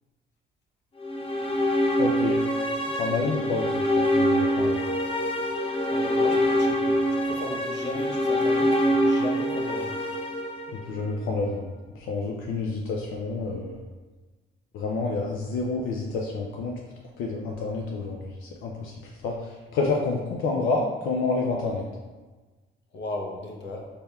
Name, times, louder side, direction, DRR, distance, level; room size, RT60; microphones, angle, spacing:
sound 1, 1.0-11.2, equal, 30° left, 0.5 m, -25 dB
voice 1, 2.0-2.4 3.0-4.8 10.9-11.7 12.0-13.8 14.7-16.8 17.2-18.9 19.2-19.4 19.7-21.9, left 3 dB, 85° left, -1 dB, 0.4 m, -29 dB
voice 2, 5.9-10.0 22.9-23.9, left 1 dB, 65° left, 1 dB, 0.8 m, -36 dB
4.3 x 3.4 x 2.3 m, 1.3 s
cardioid pair, 90°, 20 cm